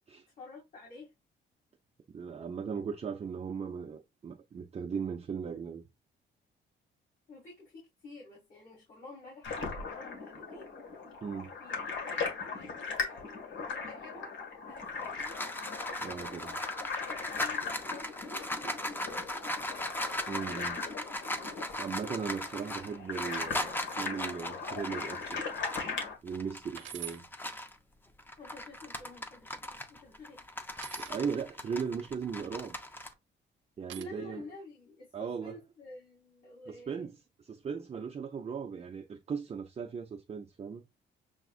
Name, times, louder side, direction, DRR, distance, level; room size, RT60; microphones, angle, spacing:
voice 1, 0.4-1.1 7.3-11.2 11.6-14.3 14.6-15.3 16.0-16.5 16.8-19.5 28.4-30.7 34.0-37.1, left 3 dB, 45° left, 2.3 m, -51 dB
voice 2, 2.1-5.8 11.2-11.5 16.0-16.5 20.3-20.8 21.7-25.4 26.2-27.2 31.0-32.8 33.8-34.4 35.1-35.6 36.7-40.8, right 6 dB, 30° right, 0.5 m, -38 dB
sound 1, 9.4-26.2, left 4 dB, 65° left, 1.7 m, -39 dB
sound 2, 14.8-27.8 28.2-33.1, left 1 dB, 10° left, 0.7 m, -38 dB
sound 3, 25.3-25.6 26.1-26.2 26.8-27.2 28.4-29.0 30.8-31.2 32.7-33.1 33.9-34.0, right 11 dB, 70° right, 0.7 m, -46 dB
6.9 x 2.3 x 2.4 m
cardioid pair, 90°, 20 cm